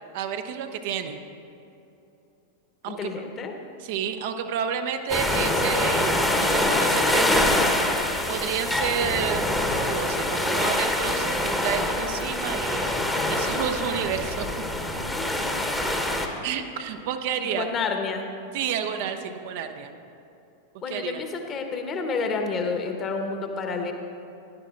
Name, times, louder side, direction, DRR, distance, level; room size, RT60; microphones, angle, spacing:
voice 1, 0.1-1.2 2.8-3.3 3.8-7.5 8.3-9.6 9.9-13.0 13.3-14.5 16.4-17.7 18.5-19.9 20.9-21.2, right 8 dB, 50° right, 6 dB, 0.6 m, -30 dB
voice 2, 2.9-3.5 14.9-15.7 15.9-16.2 17.4-18.3 18.9-19.1 20.8-23.9, left 4 dB, 30° left, 4 dB, 1.1 m, -30 dB
sound 1, 5.1-16.3, left 1 dB, 5° left, 1.0 m, -25 dB
16.5 x 11.0 x 2.5 m, 2.8 s
figure-of-eight pair, 90°, 0 cm